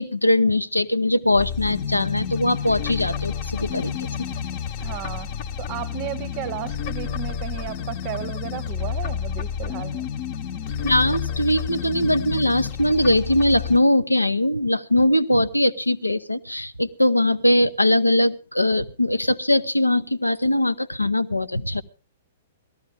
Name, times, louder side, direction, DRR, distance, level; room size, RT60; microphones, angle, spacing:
voice 1, 0.0-4.1 10.8-21.8, left 1 dB, 85° left, 0.8 m, -21 dB
sound 1, 1.4-13.8, left 7 dB, 40° left, 1.0 m, -30 dB
voice 2, 4.8-5.3 5.6-10.1, right 13 dB, 35° right, 0.7 m, -34 dB
18.0 x 14.0 x 3.6 m
figure-of-eight pair, 110°, 0 cm